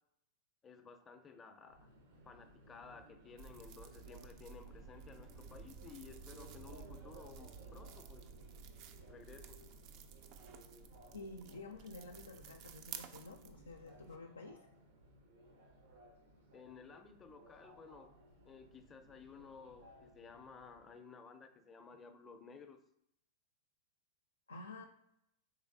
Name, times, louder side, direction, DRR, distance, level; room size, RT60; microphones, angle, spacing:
voice 1, 0.6-1.9 2.2-8.3 9.1-9.6 16.5-18.1 18.4-22.8, left 5 dB, 20° left, 7 dB, 0.5 m, -55 dB
Subway metro underground, 1.7-20.9, right 1 dB, 75° right, 1.0 m, -61 dB
sound 1, 3.4-14.2, right 6 dB, 50° right, 0.4 m, -53 dB
voice 2, 11.1-14.6 24.5-24.8, left 3 dB, 90° left, 3 dB, 0.4 m, -50 dB
4.1 x 3.3 x 2.6 m, 0.79 s
hypercardioid pair, 105°, 0 cm